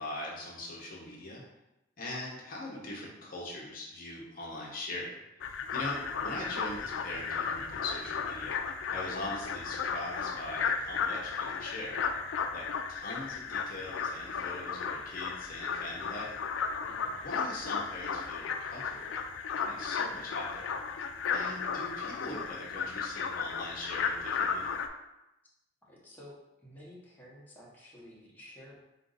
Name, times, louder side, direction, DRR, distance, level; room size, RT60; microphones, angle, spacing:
voice 1, 0.0-1.4 2.0-5.2 5.4-12.0 12.5-16.3 17.2-19.2 19.6-20.7 21.3-24.6, left 2 dB, 50° left, -3 dB, 0.7 m, -41 dB
sound 1, 5.4-24.9, left 6 dB, 85° left, 0.3 m, -35 dB
voice 2, 16.8-17.2 21.3-21.5 25.8-28.8, left 1 dB, 10° left, -6 dB, 0.9 m, -52 dB
3.9 x 2.5 x 3.8 m, 0.93 s
head